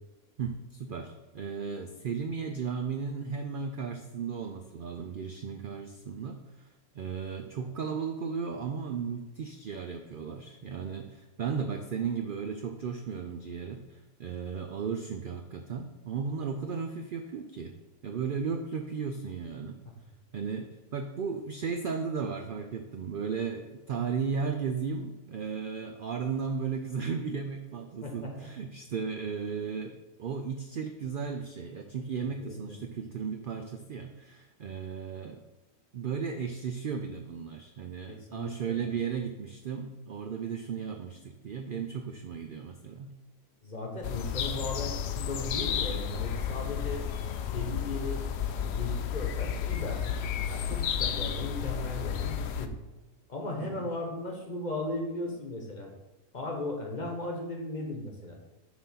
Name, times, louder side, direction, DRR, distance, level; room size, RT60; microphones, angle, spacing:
voice 1, 0.4-6.7 6.9-17.7 18.0-19.8 20.3-35.4 35.9-43.1 53.6-53.9, right 6 dB, 80° right, 5 dB, 0.4 m, -35 dB
voice 2, 28.0-28.3 32.4-32.8 38.1-38.9 43.6-47.0 47.4-50.2 50.5-52.7 53.3-55.9 56.3-58.3, left 2 dB, 35° left, 1 dB, 1.0 m, -37 dB
sound 1, 44.0-52.7, left 8 dB, 65° left, 0.6 m, -32 dB
6.2 x 3.8 x 5.6 m, 1.1 s
omnidirectional pair, 1.5 m